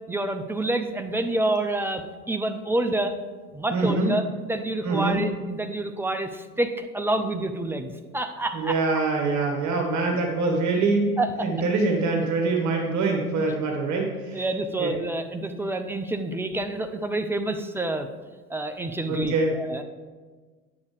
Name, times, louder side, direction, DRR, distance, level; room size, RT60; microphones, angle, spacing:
voice 1, 0.1-3.2 3.5-8.8 11.2-11.5 14.3-18.1 18.5-19.8, right 2 dB, 5° right, 7 dB, 0.6 m, -28 dB
voice 2, 3.7-4.1 4.8-5.2 8.5-11.1 11.4-14.4 14.8-14.9 19.1-19.5, right 3 dB, 40° right, 1 dB, 1.7 m, -24 dB
9.4 x 6.8 x 5.0 m, 1.4 s
figure-of-eight pair, 75°, 45 cm